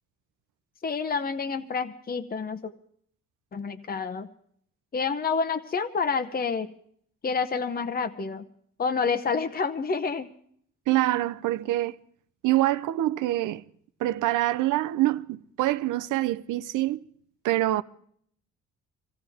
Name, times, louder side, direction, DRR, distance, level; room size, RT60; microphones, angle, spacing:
voice 1, 0.8-2.7 3.5-4.3 4.9-6.7 7.2-8.5 8.8-10.3, left 5 dB, 30° left, 0.8 m, -28 dB
voice 2, 10.9-12.0 12.4-13.6 14.0-17.0 17.4-17.8, right 15 dB, 85° right, 0.7 m, -25 dB
24.5 x 16.5 x 3.5 m
cardioid pair, 90°, 30 cm